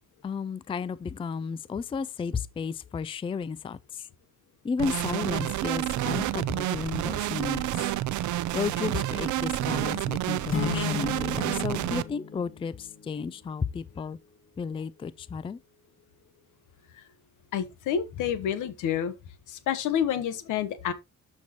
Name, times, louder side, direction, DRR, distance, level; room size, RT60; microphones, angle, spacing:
voice 1, 0.2-4.1 4.6-7.7 8.3-14.2 14.6-15.6, left 5 dB, 20° left, 0.3 m, -33 dB
sound 1, 4.8-12.0, right 14 dB, 75° right, 0.5 m, -29 dB
sound 2, 10.5-13.3, left 8 dB, 45° left, 1.4 m, -35 dB
voice 2, 17.5-19.1 19.5-20.9, left 9 dB, 85° left, 1.1 m, -28 dB
13.0 x 4.5 x 2.9 m
cardioid pair, 90°, 30 cm